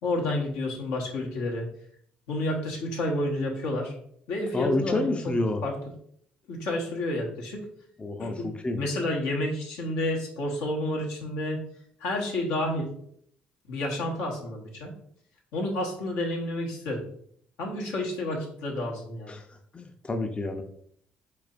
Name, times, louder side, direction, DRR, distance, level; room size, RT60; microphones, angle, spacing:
voice 1, 0.0-1.7 2.3-3.9 4.3-5.3 5.6-5.7 6.5-7.6 8.2-8.5 8.8-11.6 12.0-12.9 13.7-14.9 15.5-17.0 17.6-19.3, left 1 dB, 80° left, -1 dB, 1.2 m, -30 dB
voice 2, 4.5-5.6 8.0-8.9 19.3-20.6, left 2 dB, 25° left, 5 dB, 0.6 m, -29 dB
4.8 x 4.2 x 2.5 m, 0.64 s
hypercardioid pair, 55°, 5 cm